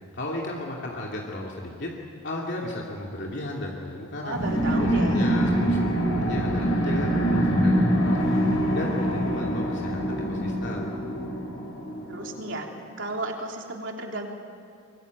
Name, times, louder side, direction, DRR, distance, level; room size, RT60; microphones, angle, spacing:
voice 1, 0.1-1.9 2.2-4.4 4.8-8.4 8.7-10.9, left 1 dB, 55° left, -2 dB, 2.8 m, -34 dB
voice 2, 4.2-5.2 12.1-12.7 13.0-14.3, right 2 dB, 65° right, 1 dB, 3.5 m, -33 dB
sound 1, 4.3-12.5, equal, 85° left, 6.7 m, -24 dB
24.5 x 23.0 x 9.5 m, 2.4 s
head